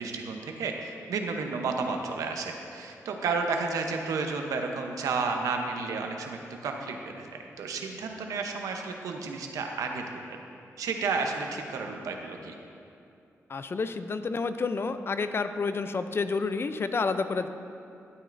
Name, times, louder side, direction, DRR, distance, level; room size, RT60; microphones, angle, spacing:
voice 1, 0.0-10.4 10.8-12.5, right 4 dB, 90° right, 3 dB, 0.8 m, -32 dB
voice 2, 13.5-17.5, left 4 dB, 45° left, 10 dB, 0.4 m, -29 dB
12.5 x 8.3 x 2.6 m, 2.6 s
cardioid pair, 65°, 6 cm